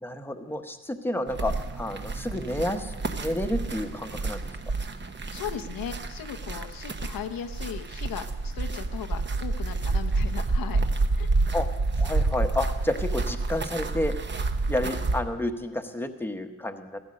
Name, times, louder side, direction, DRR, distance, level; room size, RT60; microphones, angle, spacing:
voice 1, 0.0-4.4 11.5-11.7 11.9-14.2 14.7-17.0, left 1 dB, 5° left, 6 dB, 1.0 m, -30 dB
sound 1, 1.3-15.2, right 3 dB, 35° right, 0.9 m, -29 dB
voice 2, 5.1-10.8 11.2-11.3, left 8 dB, 90° left, 6 dB, 0.9 m, -37 dB
15.0 x 14.0 x 6.4 m, 1.2 s
wide cardioid pair, 125°, 33 cm